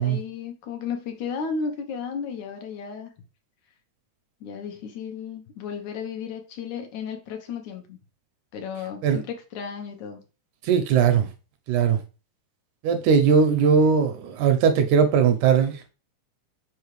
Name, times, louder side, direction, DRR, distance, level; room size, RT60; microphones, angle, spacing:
voice 1, 0.0-3.1 4.4-8.0 8.5-10.2, left 6 dB, 70° left, 2.2 m, -34 dB
voice 2, 10.6-11.3 11.7-12.0 12.8-15.9, right 6 dB, 80° right, 1.9 m, -19 dB
5.6 x 5.4 x 3.1 m
omnidirectional pair, 3.7 m